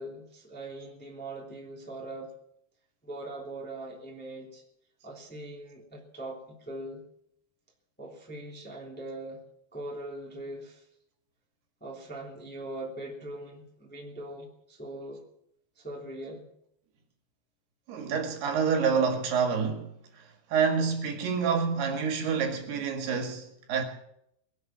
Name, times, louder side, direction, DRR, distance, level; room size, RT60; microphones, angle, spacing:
voice 1, 0.0-2.3 3.0-4.6 5.0-7.0 8.0-9.4 9.7-10.8 11.8-15.2 15.8-16.5, right 1 dB, 5° left, 2.2 m, -41 dB
voice 2, 17.9-19.9 20.2-20.3 20.5-23.8, right 6 dB, 70° right, 3.7 m, -27 dB
22.5 x 7.8 x 7.5 m
omnidirectional pair, 5.1 m